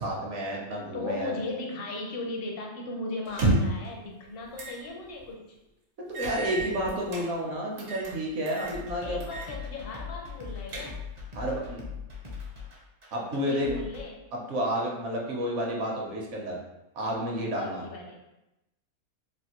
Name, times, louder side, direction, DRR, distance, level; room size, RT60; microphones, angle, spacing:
voice 1, 0.0-1.4 6.1-9.3 11.3-11.8 13.1-13.8 14.3-16.6 16.9-17.8, equal, 60° right, -2 dB, 1.0 m, -30 dB
voice 2, 0.9-5.4 9.0-11.0 13.4-14.2 17.5-18.2, left 2 dB, 55° left, 0 dB, 0.7 m, -37 dB
sound 1, 3.3-3.9 4.6-4.8 5.2-5.3 6.1-7.3 7.8-8.1 8.5-8.8 9.2-9.5 9.8-9.9 10.4-11.2, right 2 dB, 90° right, 1.3 m, -30 dB
sound 2, 8.7-14.0, left 5 dB, 40° right, 0.5 m, -40 dB
3.4 x 2.5 x 2.9 m, 0.95 s
omnidirectional pair, 1.5 m